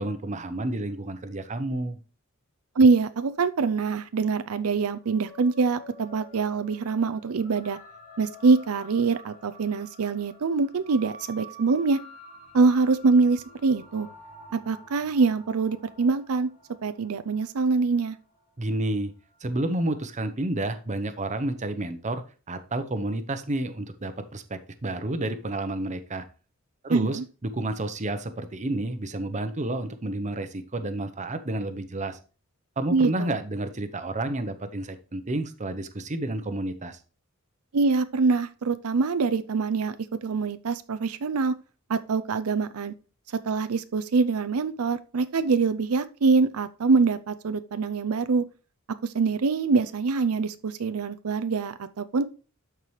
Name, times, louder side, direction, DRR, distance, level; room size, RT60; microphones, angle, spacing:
voice 1, 0.0-2.0 18.6-19.1 19.4-26.2 26.8-32.2 32.8-37.0, right 2 dB, 35° right, 0.8 m, -30 dB
voice 2, 2.8-7.8 8.2-12.0 12.5-14.1 14.5-16.5 16.8-18.2 26.9-27.2 32.9-33.3 37.7-40.0 40.2-41.5 41.9-42.9 43.4-48.4 49.0-52.2, right 4 dB, 85° right, 0.5 m, -24 dB
sound 1, 5.0-19.7, equal, 35° left, 2.8 m, -49 dB
12.5 x 4.7 x 3.2 m
head